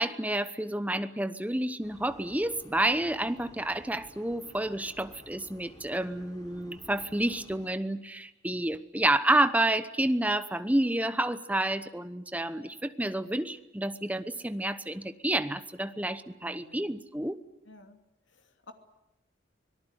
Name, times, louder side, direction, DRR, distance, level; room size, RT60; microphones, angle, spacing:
voice 1, 0.0-17.4, right 1 dB, 10° right, 11 dB, 1.0 m, -29 dB
sound 1, 1.8-7.7, equal, 20° left, 7.2 m, -54 dB
voice 2, 7.2-7.6 16.4-16.8 17.6-18.0 18.3-18.7, left 1 dB, 85° left, 5 dB, 2.8 m, -50 dB
25.0 x 19.0 x 9.9 m, 0.92 s
head